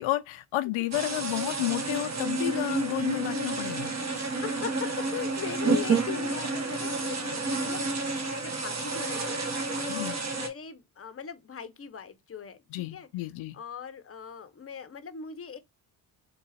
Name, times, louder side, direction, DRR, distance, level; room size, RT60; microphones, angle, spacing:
voice 1, 0.0-3.9 9.9-10.1 12.7-13.6, left 17 dB, 70° left, 0.5 m, -31 dB
sound 1, 0.9-10.5, right 3 dB, 35° right, 1.0 m, -30 dB
voice 2, 4.1-9.3 9.8-13.1 13.5-15.6, left 7 dB, 30° left, 0.7 m, -40 dB
3.8 x 2.4 x 4.1 m
cardioid pair, 85°, 49 cm